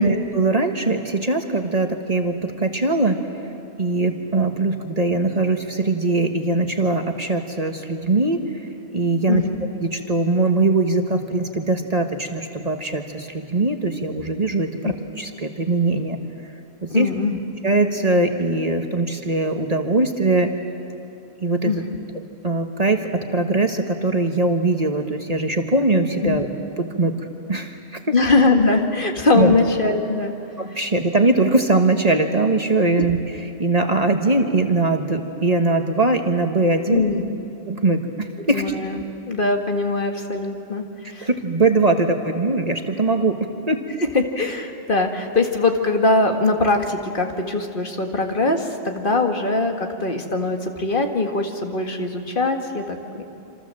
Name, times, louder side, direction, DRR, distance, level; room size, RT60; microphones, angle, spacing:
voice 1, 0.0-3.2 3.8-8.4 8.9-9.4 9.8-16.2 16.8-17.1 17.6-20.5 21.4-21.7 22.4-26.5 26.8-27.1 27.5-28.1 29.3-29.5 30.6-33.2 33.6-37.0 37.7-38.6 41.2-43.8, right 2 dB, 35° right, 5 dB, 1.5 m, -21 dB
voice 2, 9.3-9.6 14.8-14.9 16.9-17.4 21.7-22.0 26.2-26.4 28.1-30.3 36.9-37.3 38.5-41.3 44.1-53.2, left 3 dB, 50° left, 4 dB, 2.0 m, -21 dB
27.0 x 27.0 x 7.6 m, 2.6 s
omnidirectional pair, 1.1 m